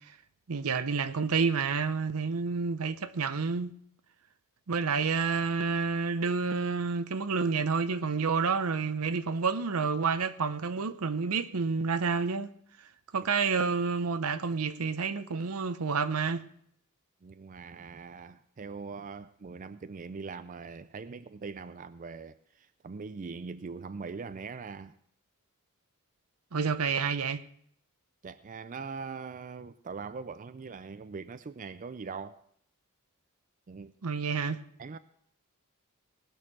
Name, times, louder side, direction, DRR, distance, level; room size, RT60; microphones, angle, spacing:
voice 1, 0.5-3.7 4.7-12.5 13.1-16.4 26.5-27.4 34.0-34.6, right 5 dB, 80° right, 0.7 m, -29 dB
voice 2, 17.2-24.9 28.2-32.4 33.7-33.9 34.8-35.0, right 5 dB, 35° right, 0.4 m, -42 dB
19.0 x 6.5 x 6.0 m
head